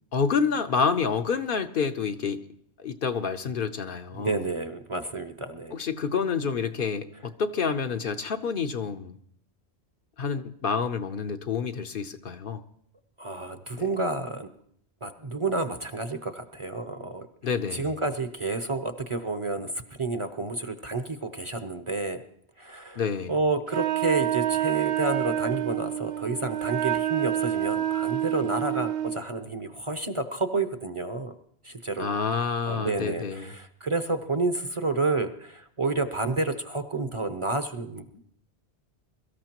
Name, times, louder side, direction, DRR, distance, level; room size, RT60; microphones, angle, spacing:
voice 1, 0.1-2.4 2.8-4.4 5.7-9.1 10.2-12.6 17.4-17.9 23.0-23.3 32.0-33.5, left 6 dB, 60° left, 0.9 m, -28 dB
voice 2, 4.1-5.7 13.2-14.5 15.0-17.3 17.7-19.7 20.0-22.2 22.6-23.0 23.3-31.3 31.6-38.2, right 3 dB, 35° right, 0.7 m, -30 dB
Wind instrument woodwind instrument, 23.7-29.2, right 12 dB, 70° right, 1.1 m, -28 dB
23.0 x 13.5 x 3.0 m
omnidirectional pair, 1.1 m